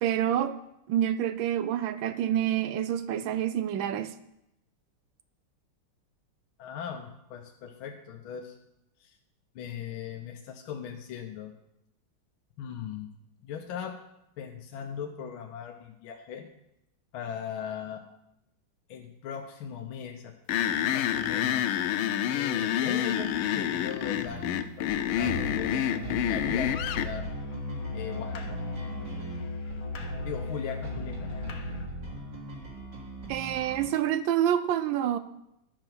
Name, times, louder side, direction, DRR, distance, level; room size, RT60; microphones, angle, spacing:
voice 1, 0.0-0.6 0.9-4.2 33.3-35.2, right 10 dB, 75° right, 12 dB, 1.2 m, -27 dB
voice 2, 6.6-8.6 9.0-9.2 9.5-11.5 12.6-13.1 13.4-14.0 14.4-16.4 17.1-18.0 18.9-21.8 22.3-26.7 27.0-27.3 27.9-28.6 30.2-31.3, left 8 dB, 70° left, 3 dB, 1.6 m, -39 dB
sound 1, 20.5-27.1, left 10 dB, 90° left, 1.5 m, -28 dB
sound 2, 24.3-33.9, right 2 dB, 50° right, 3.1 m, -41 dB
Musical instrument, 25.2-32.0, left 2 dB, 50° left, 1.1 m, -36 dB
12.0 x 6.8 x 6.1 m, 0.84 s
omnidirectional pair, 2.4 m